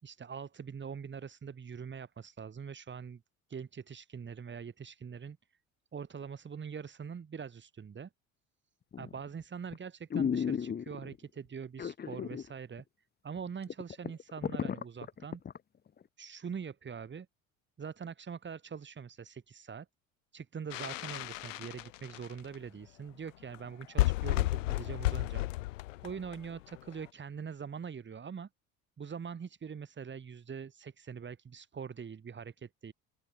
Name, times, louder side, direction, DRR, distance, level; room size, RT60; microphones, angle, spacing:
voice 1, 0.0-3.2 3.5-5.4 5.9-8.1 9.0-12.8 13.2-15.4 16.2-17.3 17.8-19.9 20.3-25.5 26.0-28.5 29.0-32.9, right 6 dB, 25° right, 4.4 m, -43 dB
sound 1, 8.9-9.3 9.7-9.8 10.1-11.2 11.8-12.5 12.8-12.9 13.4-13.5 13.7-15.6 16.0-16.1, left 7 dB, 25° left, 1.3 m, -34 dB
sound 2, 20.7-22.5 23.3-23.4 23.5-23.6 23.8-26.9, left 18 dB, 65° left, 0.7 m, -32 dB
open air
figure-of-eight pair, 65°, 41 cm